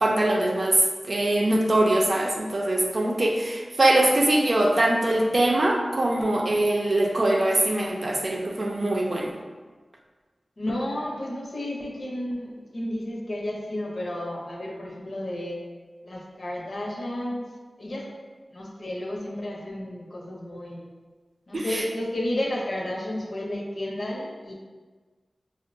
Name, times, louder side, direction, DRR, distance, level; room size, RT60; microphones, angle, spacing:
voice 1, 0.0-9.3 21.5-21.8, right 1 dB, 55° right, -1 dB, 0.5 m, -22 dB
voice 2, 10.6-15.6 16.0-17.5 17.8-18.1 18.5-20.8 21.5-24.5, left 1 dB, 70° left, -2 dB, 0.7 m, -32 dB
5.3 x 2.1 x 2.6 m, 1.4 s
wide cardioid pair, 65°, 0 cm